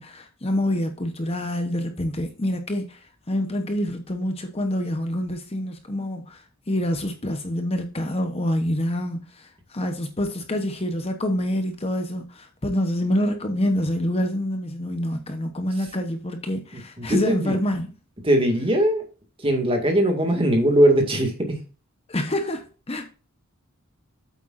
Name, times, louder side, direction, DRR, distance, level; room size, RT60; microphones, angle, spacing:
voice 1, 0.0-17.9 22.1-23.1, left 1 dB, 25° left, 0.9 m, -27 dB
voice 2, 16.7-17.6 18.2-19.0 19.4-21.6, right 1 dB, 25° right, 2.1 m, -20 dB
8.6 x 8.1 x 2.6 m
head